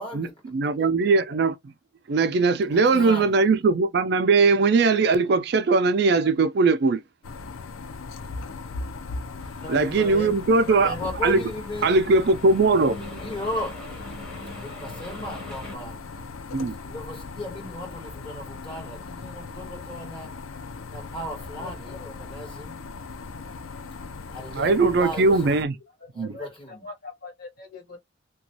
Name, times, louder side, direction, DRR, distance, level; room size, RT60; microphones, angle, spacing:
voice 1, 0.0-0.9 2.7-3.5 10.8-11.9 13.1-13.9 14.6-16.1 16.8-20.4 20.9-22.8 24.3-25.6 26.1-26.9, left 1 dB, 25° left, 1.8 m, -36 dB
voice 2, 0.5-1.7 2.1-7.0 9.7-10.9 11.2-11.4 11.8-13.0 16.5-16.8 24.5-25.7 26.2-26.3, right 3 dB, 55° right, 0.4 m, -20 dB
sound 1, 7.2-25.7, left 4 dB, 90° left, 0.5 m, -38 dB
sound 2, 9.4-15.8, equal, 5° left, 1.1 m, -44 dB
voice 3, 9.6-10.9 21.6-22.1 25.1-25.2 25.9-28.0, left 2 dB, 50° left, 1.4 m, -40 dB
2.9 x 2.3 x 2.7 m
head